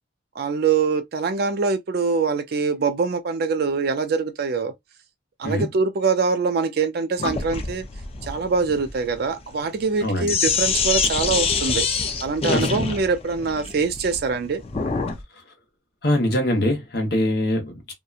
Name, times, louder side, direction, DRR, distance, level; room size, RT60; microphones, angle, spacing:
voice 1, 0.4-4.7 5.4-7.9 8.2-11.8 12.2-14.6, right 4 dB, 50° right, 0.4 m, -23 dB
Sink (filling or washing), 7.2-15.2, left 5 dB, 30° left, 0.4 m, -26 dB
voice 2, 10.0-10.3 12.5-12.9 16.0-17.9, left 1 dB, 55° left, 0.9 m, -23 dB
2.8 x 2.2 x 2.3 m
head